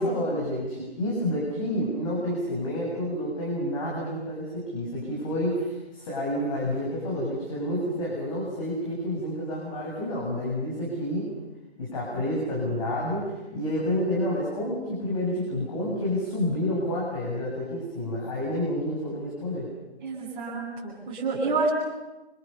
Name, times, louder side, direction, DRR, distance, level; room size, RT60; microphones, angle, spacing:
voice 1, 0.0-11.3 11.8-19.7, left 1 dB, 30° left, -4 dB, 7.6 m, -29 dB
voice 2, 20.0-21.7, right 3 dB, 15° right, -9 dB, 7.8 m, -28 dB
30.0 x 26.5 x 7.0 m, 1.0 s
figure-of-eight pair, 145°, 32 cm